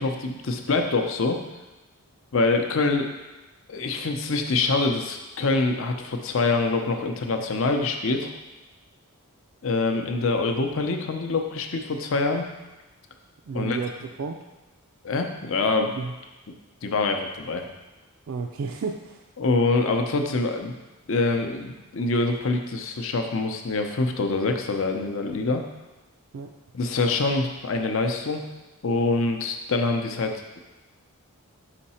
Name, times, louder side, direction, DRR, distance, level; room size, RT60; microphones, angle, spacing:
voice 1, 0.0-1.4 2.3-3.1 3.7-8.3 9.6-12.4 13.5-13.8 15.0-15.9 16.8-17.7 19.4-20.7 21.1-25.6 26.7-28.4 28.8-30.6, left 3 dB, 60° left, 4 dB, 0.6 m, -25 dB
voice 2, 13.5-14.4 15.9-16.1 18.3-19.2 26.3-26.5, right 5 dB, 65° right, 2 dB, 0.4 m, -32 dB
5.5 x 5.0 x 4.2 m, 1.1 s
head